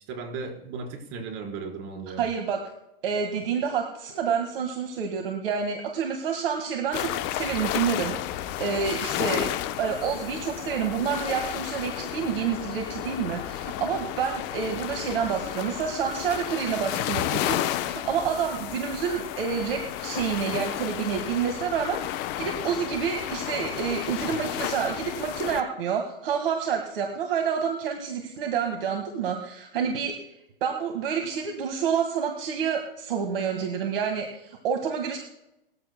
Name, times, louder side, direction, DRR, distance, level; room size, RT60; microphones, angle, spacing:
voice 1, 0.1-2.3, right 4 dB, 45° right, 1 dB, 4.4 m, -36 dB
voice 2, 2.2-2.6 3.0-9.5 9.8-30.1 30.6-35.2, right 7 dB, 70° right, 4 dB, 1.8 m, -28 dB
sound 1, 6.9-25.6, left 13 dB, 40° left, 0.8 m, -32 dB
20.0 x 14.5 x 2.2 m, 0.85 s
hypercardioid pair, 110°, 29 cm